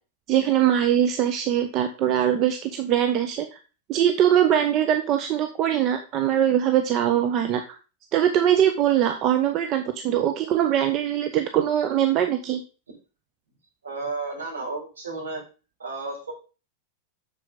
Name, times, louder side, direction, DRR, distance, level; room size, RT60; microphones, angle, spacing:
voice 1, 0.3-3.6 3.9-7.8 8.1-12.6, right 10 dB, 35° right, 7 dB, 0.9 m, -22 dB
voice 2, 13.8-15.4 15.8-16.3, right 3 dB, 70° right, -1 dB, 5.2 m, -32 dB
7.7 x 7.0 x 5.2 m, 0.33 s
figure-of-eight pair, 90°, 0 cm